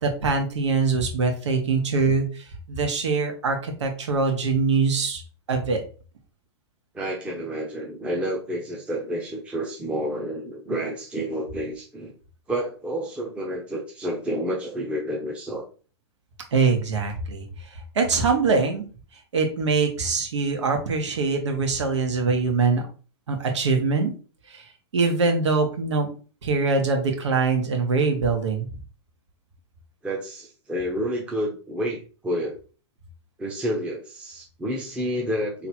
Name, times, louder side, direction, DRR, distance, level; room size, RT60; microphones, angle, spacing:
voice 1, 0.0-5.2 5.5-5.8 16.5-18.8 19.3-22.8 23.3-24.1 24.5-24.6 24.9-26.1 26.4-28.7, right 4 dB, 90° right, 4 dB, 1.4 m, -23 dB
voice 2, 6.9-12.1 12.5-15.6 30.0-32.6 33.4-35.7, equal, 10° right, -2 dB, 0.7 m, -29 dB
3.3 x 2.9 x 4.3 m, 0.37 s
hypercardioid pair, 145°, 15 cm